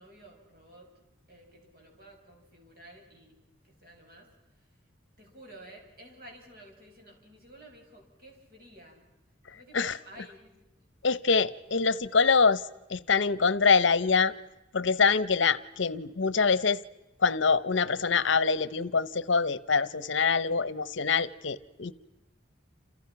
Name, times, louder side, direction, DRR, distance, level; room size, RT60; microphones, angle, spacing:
voice 1, 0.0-3.4 3.6-4.3 5.2-9.1 9.5-10.7 11.0-11.2, right 1 dB, 50° right, 1 dB, 7.5 m, -52 dB
voice 2, 11.0-12.6 12.9-14.3 14.7-16.8 17.2-21.9, left 5 dB, 70° left, 16 dB, 0.9 m, -25 dB
29.5 x 29.0 x 5.9 m, 0.97 s
head